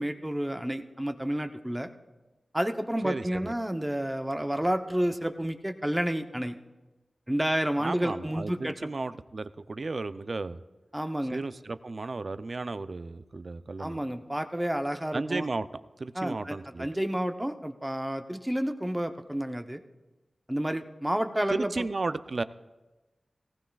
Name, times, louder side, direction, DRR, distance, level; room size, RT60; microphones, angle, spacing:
voice 1, 0.0-1.9 2.5-6.6 7.3-8.9 10.9-11.4 13.8-15.5 16.1-19.8 20.5-21.8, right 1 dB, 10° right, 7 dB, 0.7 m, -30 dB
voice 2, 3.0-3.5 7.8-10.6 11.3-14.0 15.1-15.7 16.0-16.9 21.5-22.4, right 3 dB, 55° right, 13 dB, 0.4 m, -34 dB
18.5 x 15.5 x 2.3 m, 1.1 s
wide cardioid pair, 70°, 0 cm